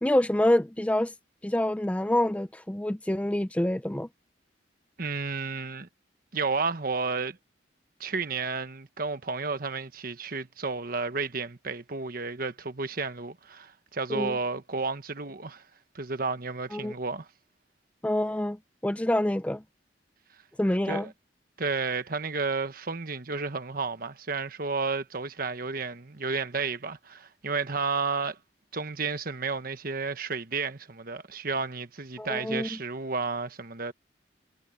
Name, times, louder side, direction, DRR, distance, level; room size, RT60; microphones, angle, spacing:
voice 1, 0.0-1.1 1.4-4.1 14.1-14.4 16.7-16.9 18.0-19.6 20.6-21.1 32.2-32.8, left 1 dB, 5° left, 0.4 m, -27 dB
voice 2, 5.0-5.9 6.3-7.4 8.0-15.6 15.9-17.3 20.9-21.1 21.6-28.4 28.7-33.9, right 4 dB, 50° right, 1.3 m, -32 dB
head